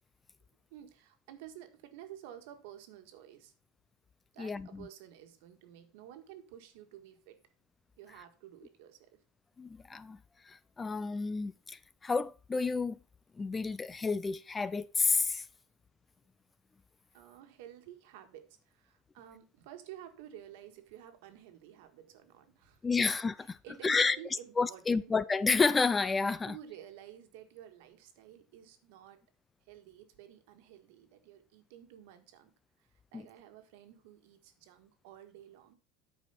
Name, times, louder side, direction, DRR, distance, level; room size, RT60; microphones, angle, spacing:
voice 1, 0.7-3.5 4.3-7.4 8.0-9.2 17.1-23.1 23.4-25.1 26.5-29.2 29.6-32.5 32.8-35.7, right 11 dB, 70° right, 1.6 m, -52 dB
voice 2, 4.4-4.9 9.6-10.2 10.5-13.0 13.4-15.4 22.8-23.6 23.8-24.2 24.6-26.5 33.1-33.2, left 4 dB, 15° left, 0.3 m, -30 dB
9.2 x 4.9 x 5.6 m
supercardioid pair, 150°, 0 cm